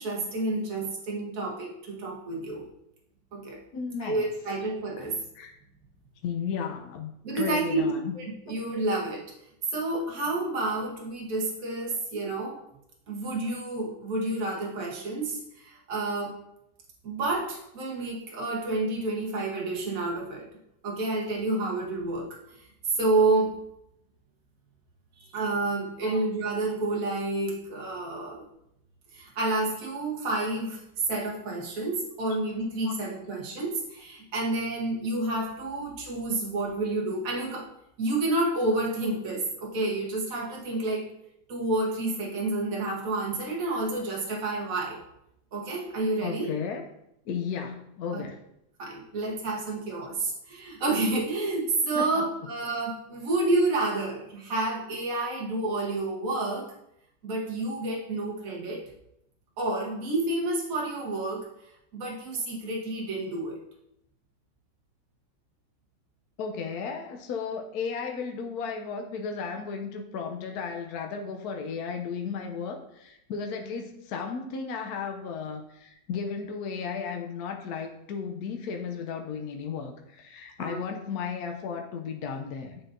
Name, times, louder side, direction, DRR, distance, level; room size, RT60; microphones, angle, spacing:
voice 1, 0.0-2.6 3.3-3.6 4.0-5.2 7.2-7.9 8.1-9.2 9.7-12.6 13.1-16.4 17.0-20.5 20.8-22.4 22.9-23.5 25.3-28.4 29.1-30.8 31.1-37.7 38.0-41.1 41.5-45.0 45.5-46.5 48.1-48.2 48.8-56.7 57.2-58.8 59.6-61.5 61.9-63.5 80.6-80.8, right 2 dB, 55° right, -3 dB, 1.6 m, -29 dB
voice 2, 3.7-4.2 5.3-5.5 6.2-7.1 7.4-8.1 26.0-26.2 32.8-33.0 46.2-46.8 47.3-48.4 51.9-52.3 66.4-82.8, left 6 dB, 70° left, 4 dB, 1.1 m, -34 dB
9.8 x 3.9 x 2.6 m, 0.79 s
omnidirectional pair, 1.9 m